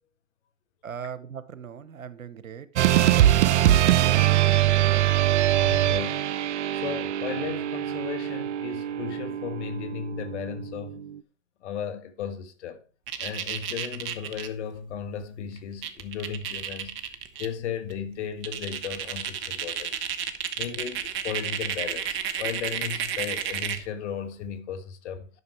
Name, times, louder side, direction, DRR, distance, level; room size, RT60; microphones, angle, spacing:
voice 1, 0.8-2.7 3.5-5.1, right 7 dB, 85° right, 1.1 m, -40 dB
Rock Music, 2.8-11.1, right 13 dB, 60° right, 0.7 m, -23 dB
voice 2, 5.6-6.3 6.7-11.0 11.6-12.8 13.2-17.0 17.4-19.9 20.6-22.1 22.4-25.3, left 7 dB, 60° left, 1.6 m, -35 dB
sound 1, 13.1-14.5 15.6-15.7 15.8-17.5 17.9-18.0 18.4-23.9, right 9 dB, 30° right, 1.2 m, -31 dB
11.0 x 6.2 x 4.6 m
hypercardioid pair, 120°, 39 cm